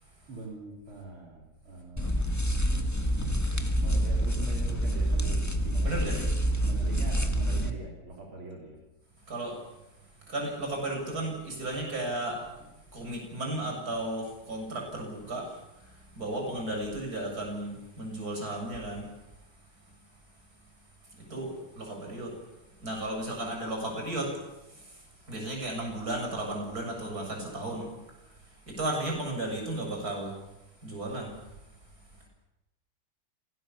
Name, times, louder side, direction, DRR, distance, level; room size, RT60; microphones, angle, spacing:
voice 1, 0.3-2.2 3.8-6.1 6.6-8.8, right 3 dB, 75° right, -2 dB, 5.0 m, -43 dB
sound 1, 2.0-7.7, right 1 dB, 10° left, 1.3 m, -27 dB
voice 2, 5.8-6.3 9.3-9.7 10.2-12.4 12.9-19.1 21.2-22.4 22.8-24.4 24.7-30.4 30.8-31.4, right 1 dB, 45° right, 1 dB, 7.5 m, -34 dB
26.0 x 18.5 x 7.2 m, 0.94 s
omnidirectional pair, 2.3 m